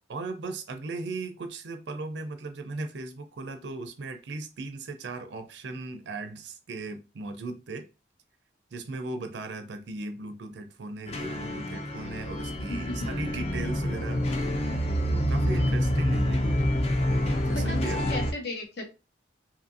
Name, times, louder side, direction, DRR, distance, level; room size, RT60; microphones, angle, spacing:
voice 1, 0.1-7.9 8.7-14.6 15.1-16.4 17.1-18.0, right 3 dB, 65° right, 0.4 m, -37 dB
sound 1, 11.1-18.3, equal, 35° left, 0.3 m, -27 dB
voice 2, 12.7-13.1 17.5-18.8, left 2 dB, 60° left, 0.8 m, -35 dB
2.7 x 2.5 x 2.6 m
head